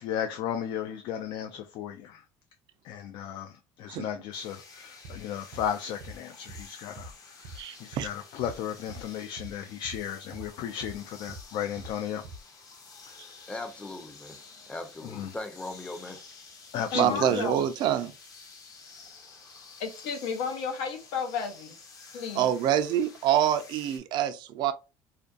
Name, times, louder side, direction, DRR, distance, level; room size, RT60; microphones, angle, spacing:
voice 1, 0.0-2.2 2.8-7.1 7.4-12.2 13.0-13.2 15.0-15.3 16.7-17.5, left 9 dB, 65° left, 0.4 m, -35 dB
sound 1, 4.3-24.0, left 4 dB, 45° left, 0.8 m, -51 dB
sound 2, 5.0-5.2 5.5-5.7 6.0-6.2 6.5-6.6 7.0-7.1 7.4-7.6 7.9-8.1 8.4-8.6 8.9-9.0 9.4-9.5 9.8-10.0 10.3-10.5 10.8-11.0 11.3-11.4 11.8-11.9 12.2-12.4, right 2 dB, 80° right, 0.8 m, -43 dB
voice 2, 7.6-8.1 16.9-18.1 22.4-24.7, right 10 dB, 60° right, 0.4 m, -26 dB
voice 3, 13.5-14.4 14.7-16.2, left 2 dB, 10° left, 0.5 m, -39 dB
voice 4, 16.9-17.6 19.8-21.8 22.1-22.5, left 6 dB, 80° left, 0.7 m, -32 dB
2.5 x 2.2 x 2.5 m
supercardioid pair, 105°, 9 cm